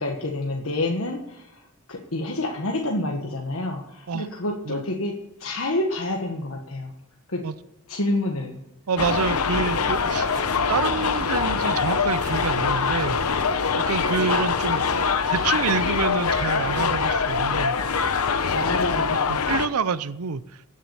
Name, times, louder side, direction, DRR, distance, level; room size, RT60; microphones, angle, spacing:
voice 1, 0.0-6.9 7.3-7.4 7.9-8.6 18.5-19.5, left 2 dB, 70° left, 1 dB, 1.5 m, -28 dB
voice 2, 8.9-13.2 13.8-14.8 15.3-17.8 19.3-20.4, right 5 dB, 85° right, 15 dB, 0.6 m, -27 dB
sound 1, 9.0-19.7, left 5 dB, 90° left, 0.9 m, -24 dB
sound 2, 9.8-17.8, equal, 20° right, 5.7 m, -40 dB
16.0 x 7.4 x 7.0 m, 0.89 s
head